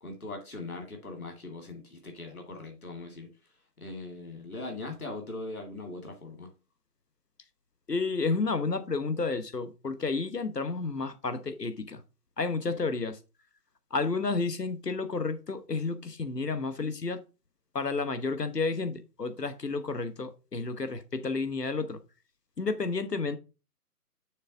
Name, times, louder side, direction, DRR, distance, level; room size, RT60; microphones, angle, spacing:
voice 1, 0.0-3.3 3.8-6.5 12.7-12.8, left 2 dB, 60° left, 2.3 m, -40 dB
voice 2, 7.9-12.0 12.4-13.2 13.9-17.2 17.7-22.0 22.6-23.4, left 4 dB, 80° left, 1.2 m, -31 dB
6.6 x 3.5 x 5.9 m
figure-of-eight pair, 150°, 47 cm